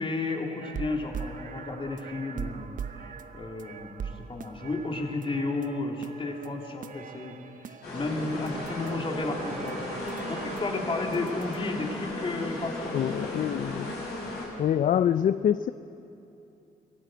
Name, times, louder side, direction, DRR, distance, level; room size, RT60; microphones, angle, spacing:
voice 1, 0.0-3.1 3.3-7.4 7.7-9.8 10.3-13.1, left 3 dB, 35° left, 1 dB, 3.2 m, -33 dB
sound 1, 0.6-11.6, right 7 dB, 55° right, 0.9 m, -42 dB
sound 2, 7.8-14.4, left 1 dB, 90° left, 7.5 m, -36 dB
voice 2, 12.9-13.9 14.6-15.7, left 9 dB, 55° left, 13 dB, 0.5 m, -25 dB
26.0 x 16.0 x 7.9 m, 2.8 s
cardioid pair, 90°, 16 cm